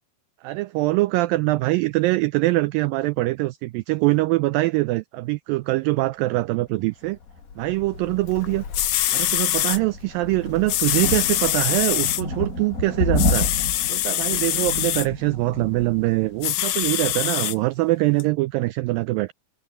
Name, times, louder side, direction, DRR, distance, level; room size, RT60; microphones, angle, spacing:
voice 1, 0.4-7.2 7.6-8.6 9.1-13.5 13.9-19.3, right 20 dB, 90° right, 2.0 m, -23 dB
Bird, 7.0-14.8, left 5 dB, 55° left, 4.0 m, -42 dB
sound 1, 8.4-8.5 8.7-9.8 10.7-12.2 13.2-15.1 16.4-17.5 18.2-18.3, left 14 dB, 70° left, 2.2 m, -24 dB
sound 2, 9.8-17.3, left 1 dB, 20° left, 5.8 m, -29 dB
omnidirectional pair, 4.6 m